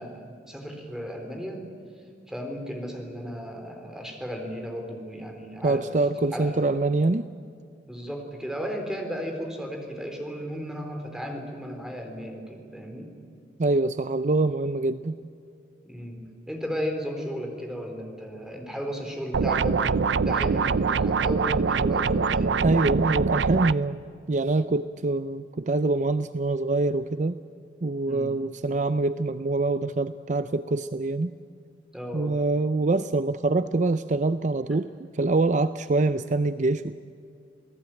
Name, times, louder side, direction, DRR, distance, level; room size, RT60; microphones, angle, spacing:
voice 1, 0.0-1.7 2.3-5.9 6.3-6.5 7.9-13.1 15.9-22.9 28.1-28.3 31.9-32.4, equal, 5° right, 3 dB, 3.9 m, -35 dB
voice 2, 5.6-7.3 13.6-15.2 22.6-24.0 24.3-27.4 27.8-31.3 32.1-34.9 35.1-37.0, right 2 dB, 45° right, 12 dB, 0.6 m, -25 dB
sound 1, 19.3-23.7, right 5 dB, 85° right, 0.5 m, -24 dB
28.0 x 18.5 x 9.0 m, 2.4 s
head